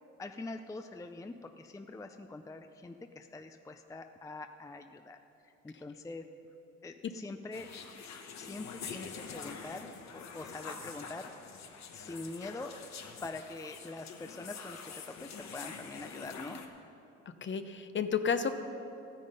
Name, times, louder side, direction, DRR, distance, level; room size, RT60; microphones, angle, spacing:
voice 1, 0.2-5.2 5.6-6.2 6.8-7.7 8.4-11.3 11.9-12.7 13.2-16.6, left 2 dB, 10° left, 7 dB, 0.5 m, -44 dB
sound 1, 7.5-16.7, left 5 dB, 65° left, 1.2 m, -46 dB
voice 2, 17.4-18.5, left 6 dB, 40° left, 9 dB, 0.8 m, -31 dB
14.0 x 9.3 x 5.3 m, 2.8 s
cardioid pair, 90°, 30 cm